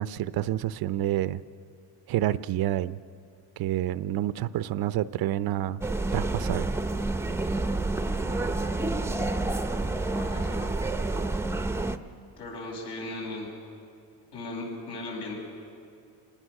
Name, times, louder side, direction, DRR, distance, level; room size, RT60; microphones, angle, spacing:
voice 1, 0.0-1.4 2.1-3.0 3.6-5.8 6.1-6.7, right 13 dB, 65° right, 16 dB, 0.7 m, -28 dB
sound 1, 5.8-12.0, right 2 dB, 5° right, 0.7 m, -29 dB
voice 2, 8.1-8.5 10.2-10.6 12.4-13.5 14.3-15.3, left 2 dB, 75° left, -1 dB, 7.3 m, -38 dB
27.0 x 19.0 x 6.5 m, 2.4 s
cardioid pair, 125°, 39 cm